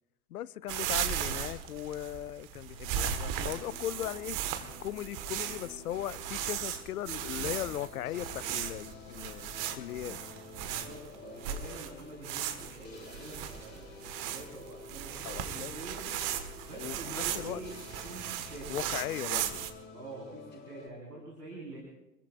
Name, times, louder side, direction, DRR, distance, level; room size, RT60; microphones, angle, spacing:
voice 1, 0.3-4.4 4.8-10.2 15.2-15.8 16.8-17.6 18.7-19.7, left 12 dB, 70° left, 0.6 m, -38 dB
sound 1, 0.7-19.7, right 10 dB, 40° right, 1.6 m, -37 dB
sound 2, 3.4-20.9, left 5 dB, 20° left, 4.6 m, -51 dB
voice 2, 10.6-16.1 16.6-18.8 19.9-21.8, right 2 dB, 80° right, 4.5 m, -46 dB
27.5 x 21.0 x 2.5 m
figure-of-eight pair, 80°, 47 cm